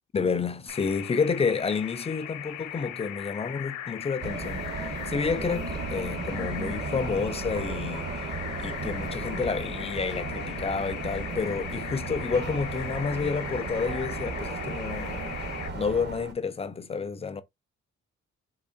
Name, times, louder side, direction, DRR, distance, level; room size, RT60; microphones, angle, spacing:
voice 1, 0.1-8.1 8.6-15.4 15.7-17.4, left 5 dB, 20° left, 0.3 m, -30 dB
sound 1, 0.7-15.7, left 11 dB, 70° left, 0.6 m, -39 dB
sound 2, 4.2-16.3, right 3 dB, 35° right, 0.7 m, -35 dB
3.6 x 2.0 x 2.4 m
cardioid pair, 90°, 30 cm